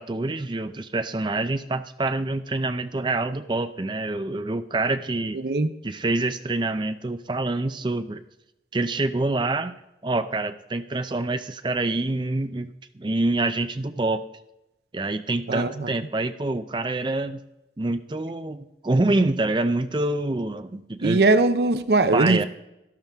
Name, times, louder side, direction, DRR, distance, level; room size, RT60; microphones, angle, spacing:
voice 1, 0.0-5.4 5.8-8.2 8.7-9.8 10.0-14.3 14.9-17.4 17.8-21.2 22.1-22.4, right 2 dB, 25° right, 0.5 m, -26 dB
voice 2, 15.5-15.9 21.0-22.5, right 2 dB, 65° right, 0.6 m, -20 dB
12.5 x 11.5 x 3.5 m
head